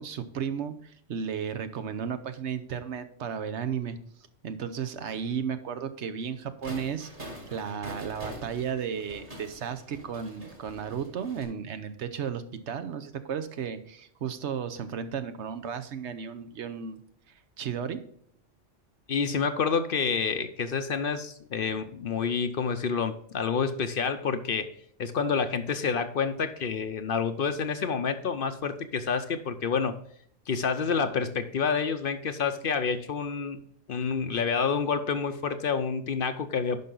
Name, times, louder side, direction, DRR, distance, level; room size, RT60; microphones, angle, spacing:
voice 1, 0.0-4.0 4.4-17.0 17.6-18.0, right 7 dB, 70° right, 10 dB, 1.0 m, -34 dB
sound 1, 6.6-11.4, equal, 45° right, 2.4 m, -44 dB
voice 2, 19.1-24.7 25.0-30.0 30.5-33.6 33.9-36.8, left 5 dB, 55° left, 10 dB, 0.7 m, -28 dB
10.5 x 5.6 x 3.8 m, 0.64 s
omnidirectional pair, 1.2 m